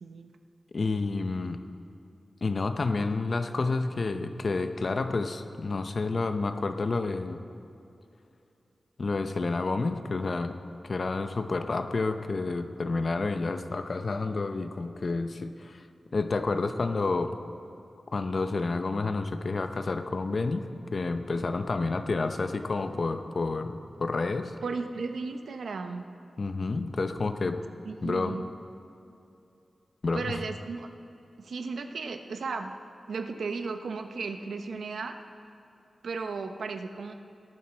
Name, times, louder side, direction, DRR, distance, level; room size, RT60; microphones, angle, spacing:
voice 1, 0.0-0.3 24.6-26.0 27.8-28.4 30.1-30.9 31.4-32.8 33.1-35.2 36.0-37.1, right 4 dB, 85° right, 6 dB, 0.8 m, -35 dB
voice 2, 0.7-1.6 2.4-7.4 9.0-10.6 10.8-15.8 16.1-17.4 18.1-20.7 20.9-24.5 26.4-27.7 28.0-28.4 30.0-30.4, left 3 dB, 45° left, 8 dB, 0.7 m, -29 dB
18.5 x 11.0 x 4.4 m, 2.7 s
wide cardioid pair, 140°, 0 cm